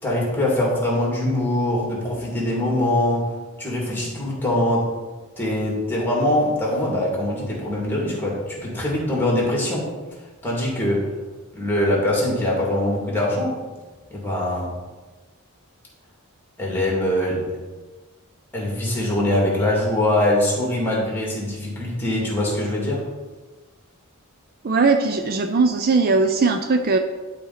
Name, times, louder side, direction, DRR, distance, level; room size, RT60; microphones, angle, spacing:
voice 1, 0.0-3.3 3.6-4.9 5.4-9.9 10.4-11.1 11.5-13.6 14.1-14.7 16.6-17.5 18.5-23.1, left 1 dB, 10° left, -4 dB, 2.2 m, -23 dB
voice 2, 24.6-27.0, right 4 dB, 45° right, 5 dB, 0.4 m, -19 dB
11.0 x 4.3 x 4.0 m, 1.3 s
head